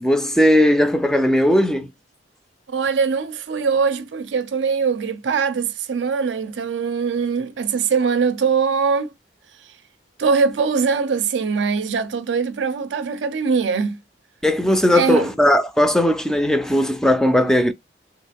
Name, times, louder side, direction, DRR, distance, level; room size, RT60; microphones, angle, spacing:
voice 1, 0.0-1.9 14.4-17.7, left 1 dB, 5° left, 0.3 m, -17 dB
voice 2, 2.7-9.1 10.2-14.0 14.9-15.3, right 5 dB, 80° right, 0.5 m, -22 dB
3.4 x 2.3 x 3.3 m
head